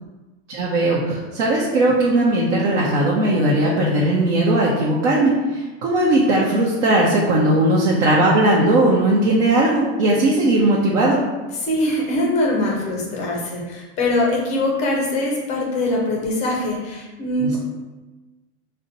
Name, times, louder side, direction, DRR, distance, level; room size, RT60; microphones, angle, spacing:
voice 1, 0.5-11.2 17.4-17.6, right 1 dB, 80° right, -4 dB, 0.8 m, -18 dB
voice 2, 11.5-17.6, left 1 dB, 20° left, -2 dB, 0.4 m, -22 dB
5.3 x 2.1 x 2.7 m, 1.2 s
supercardioid pair, 170°, 37 cm